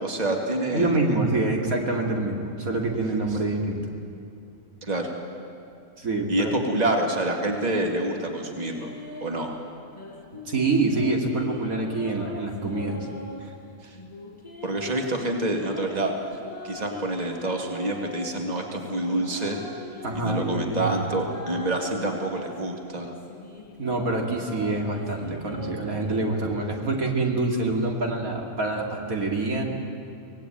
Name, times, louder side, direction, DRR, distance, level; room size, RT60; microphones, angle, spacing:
voice 1, 0.0-1.1 4.8-5.1 6.3-8.9 9.2-9.6 13.8-13.9 14.6-16.1 16.6-19.6 20.1-23.1, right 1 dB, 30° right, 2 dB, 2.3 m, -27 dB
voice 2, 0.7-3.8 6.0-6.5 10.5-13.1 13.4-13.5 20.0-20.9 23.8-29.6, right 2 dB, 75° right, 1 dB, 2.9 m, -26 dB
sound 1, 8.6-9.4 9.9-13.4 13.9-18.3 18.8-22.6 23.1-26.2, left 2 dB, 20° left, 5.0 m, -40 dB
24.0 x 19.0 x 9.1 m, 2.5 s
omnidirectional pair, 1.5 m